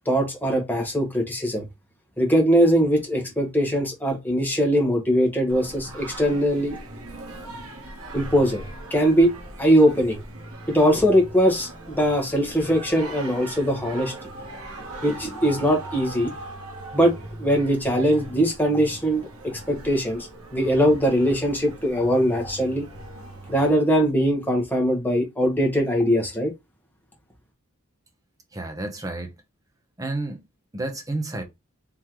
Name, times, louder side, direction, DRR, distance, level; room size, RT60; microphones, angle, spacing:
voice 1, 0.1-1.6 2.2-6.8 8.1-8.6 8.9-9.3 9.6-10.2 10.7-14.1 15.0-16.3 16.9-17.1 17.4-22.9 23.5-26.5, equal, 10° left, 1.1 m, -21 dB
Singing, 5.5-23.7, right 2 dB, 80° right, 1.0 m, -40 dB
voice 2, 28.5-29.3 30.0-30.4 30.7-31.4, right 2 dB, 15° right, 0.7 m, -30 dB
3.7 x 3.1 x 2.9 m
head